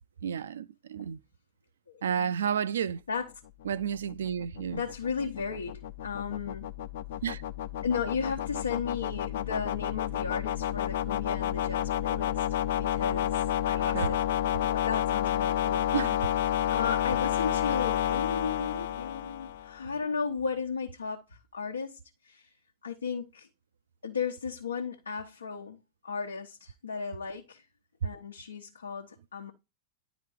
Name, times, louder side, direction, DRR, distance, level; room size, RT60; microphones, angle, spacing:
voice 1, 0.2-1.2 2.0-3.0 3.7-4.8 7.2-7.4 13.9-14.1 15.9-16.2, right 8 dB, 65° right, 0.4 m, -31 dB
voice 2, 1.9-2.3 3.1-3.3 4.7-6.7 7.8-12.4 12.8-14.1 14.4-15.9 16.7-21.2 21.5-22.0 22.2-22.5 22.8-23.5 24.0-27.6 28.0-29.5, left 5 dB, 75° left, 1.0 m, -35 dB
sound 1, 3.6-19.8, left 11 dB, 55° left, 0.5 m, -30 dB
11.0 x 4.0 x 4.8 m
figure-of-eight pair, 90°, 0 cm